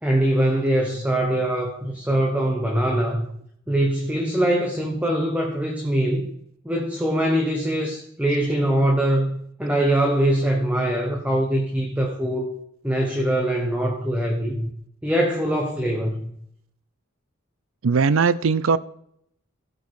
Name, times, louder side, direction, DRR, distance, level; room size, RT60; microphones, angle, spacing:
voice 1, 0.0-3.3 3.7-6.3 6.6-12.5 12.8-14.7 15.0-16.3, right 1 dB, 5° right, 1.1 m, -23 dB
voice 2, 17.8-18.8, right 5 dB, 80° right, 0.5 m, -19 dB
15.5 x 5.4 x 4.8 m
head